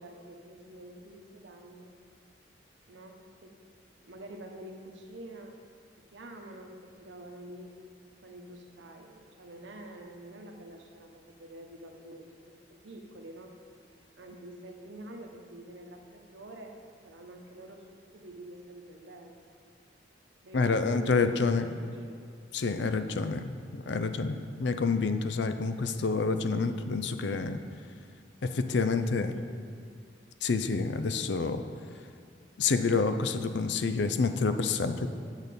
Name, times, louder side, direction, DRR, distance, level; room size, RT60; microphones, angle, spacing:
voice 1, 0.0-1.9 2.9-3.6 4.0-5.5 6.0-7.7 8.2-13.5 14.1-16.8 17.0-19.6 20.4-22.2 23.4-24.2 28.7-29.8, right 1 dB, 80° right, 3 dB, 0.9 m, -48 dB
voice 2, 20.5-21.8 22.5-27.6 28.4-29.3 30.4-31.6 32.6-35.1, left 4 dB, 70° left, 9 dB, 0.5 m, -28 dB
8.0 x 6.6 x 5.3 m, 2.1 s
head